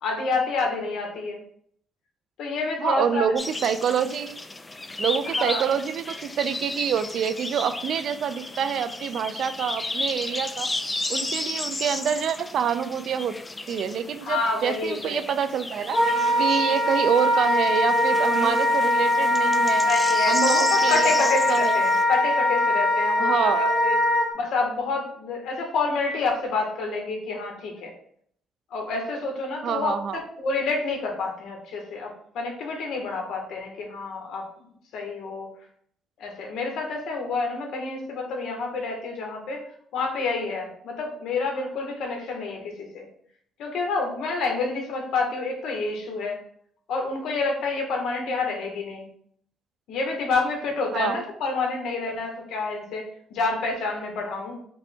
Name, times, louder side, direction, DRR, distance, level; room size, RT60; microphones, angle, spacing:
voice 1, 0.0-1.4 2.4-3.3 5.4-5.7 14.2-15.3 19.8-24.0 24.3-27.9 28.7-30.0 30.4-34.7 34.9-35.5 36.2-39.6 39.9-43.1 43.6-46.4 46.9-49.1 49.9-53.0 53.3-54.6, left 3 dB, 80° left, 1 dB, 1.2 m, -28 dB
voice 2, 2.8-4.4 5.0-10.7 11.1-13.3 13.7-16.0 16.4-19.9 20.3-21.8 23.2-23.6 29.6-30.2 50.9-51.2, right 8 dB, 55° right, 11 dB, 0.3 m, -26 dB
sound 1, 3.4-22.0, left 2 dB, 15° left, 0.3 m, -33 dB
Wind instrument woodwind instrument, 15.9-24.3, left 1 dB, 55° left, 1.1 m, -22 dB
5.2 x 2.2 x 4.3 m, 0.63 s
cardioid pair, 150°, 0 cm